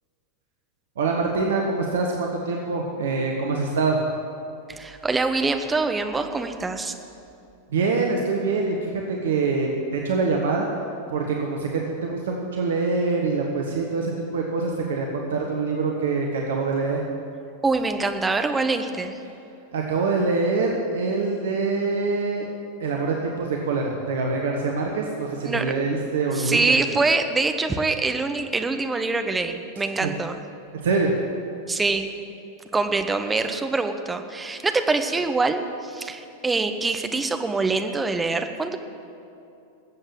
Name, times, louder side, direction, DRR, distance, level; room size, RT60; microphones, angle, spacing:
voice 1, 1.0-4.0 7.7-10.7 11.1-17.0 19.7-22.5 22.8-26.8 30.0-30.1 30.8-31.1, right 4 dB, 60° right, 0 dB, 1.2 m, -25 dB
voice 2, 4.7-6.9 17.6-19.2 25.4-25.7 26.3-30.4 31.7-32.1 32.7-38.8, right 3 dB, 10° right, 7 dB, 1.0 m, -24 dB
13.5 x 7.9 x 8.6 m, 2.7 s
figure-of-eight pair, 90°, 0 cm